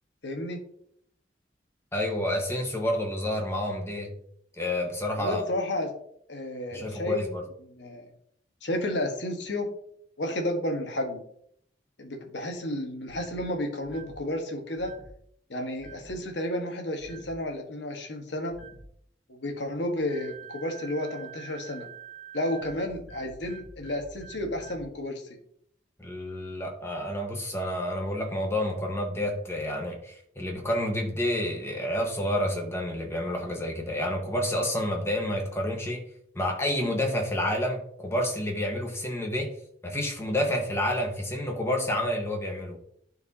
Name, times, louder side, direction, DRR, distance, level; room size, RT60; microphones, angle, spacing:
voice 1, 0.2-0.6 5.1-5.9 6.3-7.2 7.7-8.1 8.6-9.7 10.2-11.2 12.0-14.9 15.5-18.6 19.3-21.9 22.3-25.2, left 1 dB, 80° left, 4 dB, 1.4 m, -32 dB
voice 2, 1.9-4.1 4.6-5.4 6.7-7.4 26.0-36.0 36.3-39.5 39.8-42.8, left 1 dB, 15° left, 1 dB, 1.3 m, -29 dB
sound 1, 13.1-13.4 13.8-14.2 14.8-15.1 15.8-16.2 17.0-17.4 18.5-18.9 20.1-24.9, right 5 dB, ahead, 1.6 m, -46 dB
11.5 x 4.6 x 2.8 m, 0.68 s
head